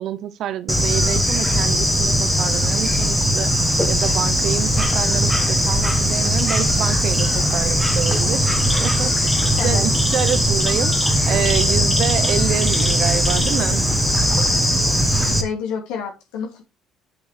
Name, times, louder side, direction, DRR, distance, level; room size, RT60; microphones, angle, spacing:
voice 1, 0.0-3.5 3.9-8.6 8.8-9.3 9.6-13.9, right 10 dB, 45° right, 0.7 m, -27 dB
Bird / Insect, 0.7-15.4, equal, 5° left, 1.2 m, -19 dB
voice 2, 15.2-16.6, left 6 dB, 85° left, 2.4 m, -29 dB
7.9 x 6.9 x 3.3 m
cardioid pair, 160°, 0 cm